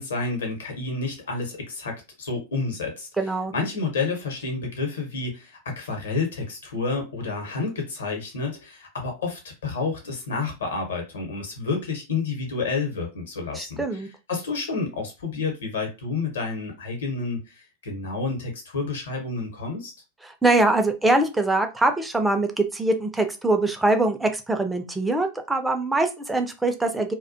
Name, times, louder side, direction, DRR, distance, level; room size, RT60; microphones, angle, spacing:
voice 1, 0.0-19.9, left 4 dB, 65° left, 0.9 m, -30 dB
voice 2, 3.2-3.5 13.6-14.1 20.4-27.1, right 2 dB, 5° right, 0.4 m, -23 dB
2.3 x 2.2 x 2.5 m
figure-of-eight pair, 90°, 0 cm